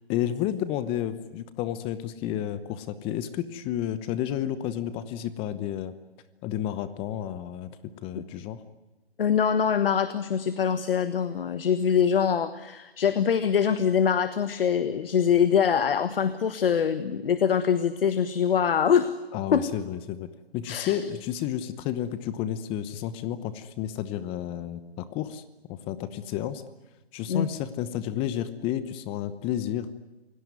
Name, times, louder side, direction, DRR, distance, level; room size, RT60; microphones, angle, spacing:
voice 1, 0.1-5.9 6.4-8.6 19.3-25.4 25.7-26.6 27.1-29.9, left 11 dB, 15° left, 14 dB, 0.9 m, -31 dB
voice 2, 9.2-19.1 19.5-19.7 20.7-21.0 27.3-27.5, left 7 dB, 60° left, 13 dB, 1.6 m, -24 dB
28.5 x 17.5 x 9.6 m, 1.1 s
hypercardioid pair, 145°, 31 cm